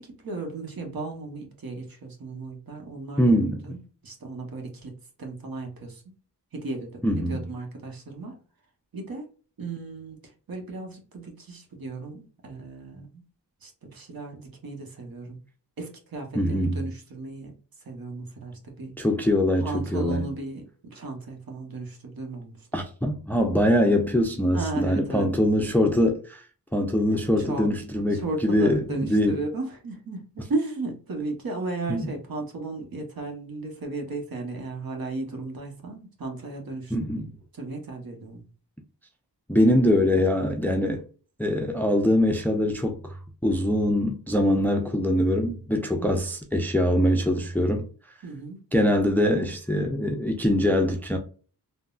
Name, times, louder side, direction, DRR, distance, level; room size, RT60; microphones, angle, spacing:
voice 1, 0.0-3.4 3.6-3.8 4.0-4.9 5.2-6.1 6.5-8.4 8.9-9.3 9.6-10.2 10.5-13.2 13.6-15.4 15.8-17.5 17.8-18.9 19.6-22.7 24.5-25.3 27.4-27.7 28.1-36.9 37.5-38.5 46.0-46.3 48.2-48.6, right 3 dB, 60° right, 1.0 m, -35 dB
voice 2, 3.2-3.8 7.0-7.4 16.4-16.8 19.0-20.2 22.7-26.4 26.7-29.4 31.9-32.1 36.9-37.3 39.5-41.0 41.4-43.1 43.4-47.9 48.7-51.2, left 1 dB, 5° left, 0.4 m, -23 dB
3.5 x 2.1 x 2.4 m
cardioid pair, 55°, 40 cm